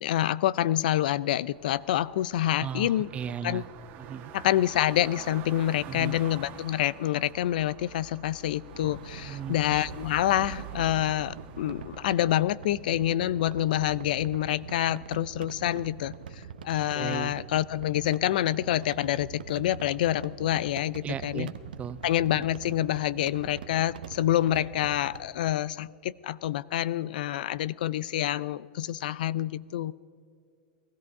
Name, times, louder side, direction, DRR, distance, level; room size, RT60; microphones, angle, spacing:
voice 1, 0.0-3.1 3.4-3.6 4.3-16.1 16.6-21.5 22.0-29.9, left 13 dB, 75° left, 21 dB, 0.4 m, -27 dB
sound 1, 1.5-12.3, right 7 dB, 45° right, 1.5 m, -46 dB
voice 2, 2.6-3.6 4.1-4.3 5.9-6.2 9.2-9.6 16.9-17.3 21.0-21.5 21.8-22.0, right 8 dB, 25° right, 16 dB, 0.5 m, -35 dB
sound 2, 8.6-25.3, right 7 dB, 90° right, 0.9 m, -44 dB
18.5 x 13.5 x 4.7 m, 2.2 s
hypercardioid pair, 115°, 5 cm